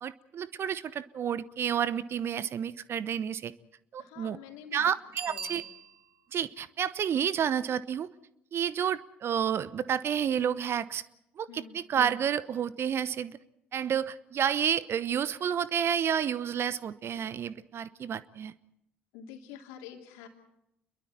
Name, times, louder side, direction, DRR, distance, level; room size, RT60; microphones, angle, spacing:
voice 1, 0.0-3.5 3.9-4.4 4.7-5.6 6.3-8.1 8.5-11.0 11.4-13.4 13.7-18.5, right 8 dB, 45° right, 17 dB, 0.9 m, -30 dB
voice 2, 4.0-4.9 5.3-5.7 11.5-11.8 19.1-20.3, left 8 dB, 65° left, 3 dB, 3.2 m, -47 dB
Bicycle bell, 5.1-6.3 11.7-11.8, right 6 dB, 75° right, 2.4 m, -41 dB
29.0 x 22.5 x 4.4 m, 0.82 s
figure-of-eight pair, 50°, 6 cm